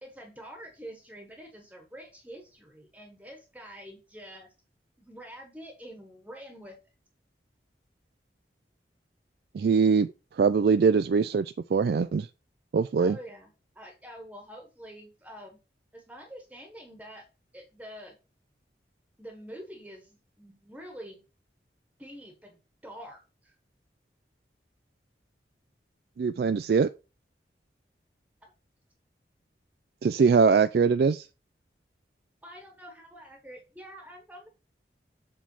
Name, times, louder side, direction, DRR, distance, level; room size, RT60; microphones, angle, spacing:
voice 1, 0.0-4.5 5.0-6.8 13.0-15.6 15.9-17.2 17.5-18.2 19.2-21.2 22.0-23.5 28.4-28.5 32.4-34.5, equal, 10° right, 1.2 m, -46 dB
voice 2, 9.5-10.1 10.4-12.3 12.7-13.2 26.2-26.9 30.0-31.3, right 5 dB, 60° right, 0.3 m, -22 dB
7.5 x 3.5 x 5.5 m
head